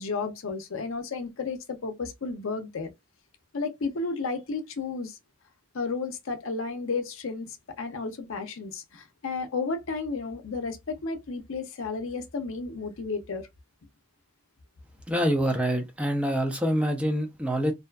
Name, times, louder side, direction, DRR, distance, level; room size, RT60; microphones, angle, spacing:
voice 1, 0.0-2.9 3.5-5.2 5.7-13.5, left 4 dB, 65° left, 0.5 m, -32 dB
voice 2, 15.1-17.7, equal, 5° right, 0.4 m, -26 dB
2.6 x 2.3 x 2.2 m
head